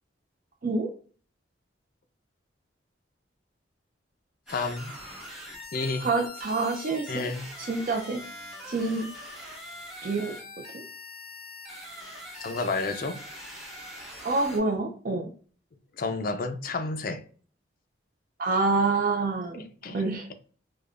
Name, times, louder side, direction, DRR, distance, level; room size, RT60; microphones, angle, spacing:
voice 1, 4.5-4.9 5.7-6.1 7.1-7.5 12.4-13.2 16.0-17.2 19.8-20.0, left 3 dB, 50° left, 0.5 m, -30 dB
sound 1, 4.5-14.6, left 1 dB, 5° right, 1.0 m, -43 dB
voice 2, 6.0-7.3 7.7-8.2 8.7-9.1 10.0-10.4 10.7-10.8 14.2-15.3 18.4-19.6 19.9-20.3, right 3 dB, 50° right, 0.4 m, -27 dB
4.9 x 2.2 x 2.4 m
head